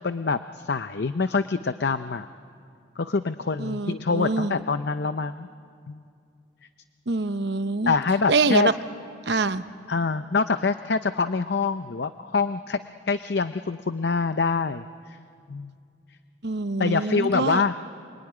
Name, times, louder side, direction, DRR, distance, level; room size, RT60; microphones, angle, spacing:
voice 1, 0.0-2.3 3.0-5.5 5.9-6.0 7.9-8.7 9.9-12.8 13.1-15.2 15.5-15.7 16.8-17.7, left 4 dB, 60° left, 11 dB, 0.6 m, -25 dB
voice 2, 3.6-4.5 7.1-7.9 8.3-8.7 9.3-9.6 16.4-17.6, right 3 dB, 65° right, 11 dB, 0.9 m, -25 dB
26.0 x 22.5 x 10.0 m, 2.4 s
head